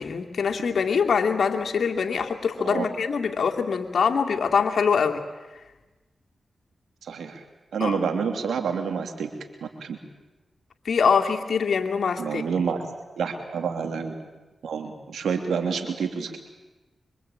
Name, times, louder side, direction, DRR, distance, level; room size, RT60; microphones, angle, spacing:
voice 1, 0.0-5.2 7.8-8.0 10.8-12.4, left 6 dB, 75° left, 4 dB, 2.6 m, -24 dB
voice 2, 7.1-7.4 7.7-9.3 9.6-10.0 12.2-12.9 13.2-14.1 14.6-16.4, right 6 dB, 85° right, 5 dB, 3.1 m, -28 dB
25.5 x 25.0 x 8.8 m, 1.1 s
cardioid pair, 40°, 0 cm